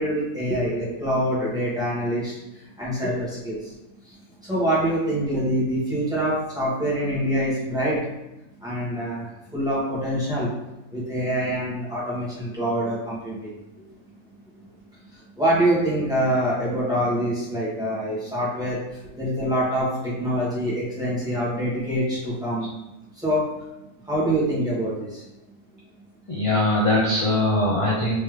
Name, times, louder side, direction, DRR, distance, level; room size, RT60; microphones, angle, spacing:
voice 1, 0.0-3.7 4.1-4.2 4.4-8.0 8.6-9.3 9.5-10.5 10.9-13.5 15.1-22.7 23.2-23.4 24.0-25.2, right 1 dB, 5° right, -9 dB, 1.3 m, -25 dB
voice 2, 26.3-28.2, left 1 dB, 35° left, -5 dB, 0.5 m, -21 dB
3.6 x 3.2 x 3.2 m, 0.95 s
omnidirectional pair, 1.4 m